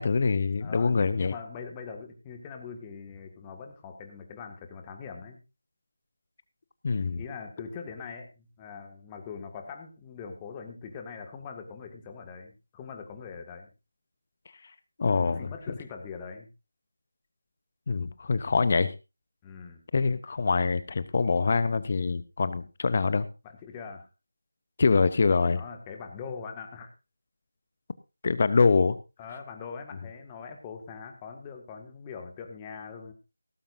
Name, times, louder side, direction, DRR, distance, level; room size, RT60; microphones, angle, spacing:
voice 1, 0.0-1.3 6.8-7.2 15.0-15.5 17.9-18.9 19.9-23.3 24.8-25.6 28.2-29.0, left 4 dB, 35° left, 15 dB, 0.8 m, -24 dB
voice 2, 0.6-5.4 7.2-13.7 15.0-16.5 19.4-19.8 23.4-24.1 25.6-26.9 29.2-33.1, left 5 dB, 15° left, 4 dB, 1.9 m, -42 dB
17.0 x 14.0 x 2.6 m, 0.28 s
figure-of-eight pair, 165°, 0 cm